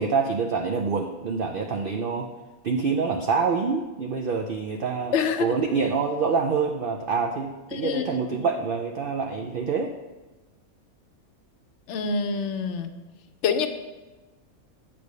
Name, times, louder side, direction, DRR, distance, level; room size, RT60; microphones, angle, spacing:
voice 1, 0.0-2.3 2.6-9.9, right 5 dB, 90° right, 3 dB, 0.4 m, -26 dB
voice 2, 5.1-5.6 7.7-8.2 11.9-12.9 13.4-13.7, left 6 dB, 65° left, 8 dB, 0.8 m, -26 dB
8.5 x 3.3 x 6.6 m, 1.2 s
omnidirectional pair, 1.5 m